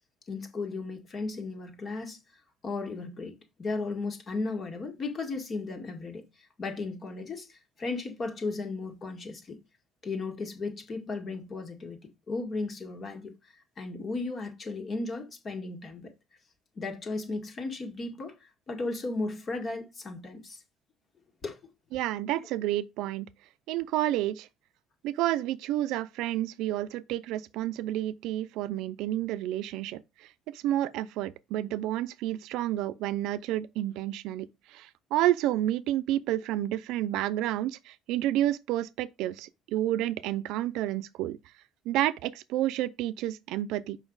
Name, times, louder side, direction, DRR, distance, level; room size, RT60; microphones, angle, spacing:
voice 1, 0.3-2.2 2.6-9.6 10.0-12.0 12.3-16.1 16.8-20.6 21.4-21.6, left 3 dB, 30° left, 1.9 m, -35 dB
voice 2, 21.9-23.3 23.7-24.5 25.0-41.4 41.9-44.0, right 14 dB, 75° right, 0.5 m, -30 dB
7.2 x 5.7 x 3.9 m
cardioid pair, 160°, 0 cm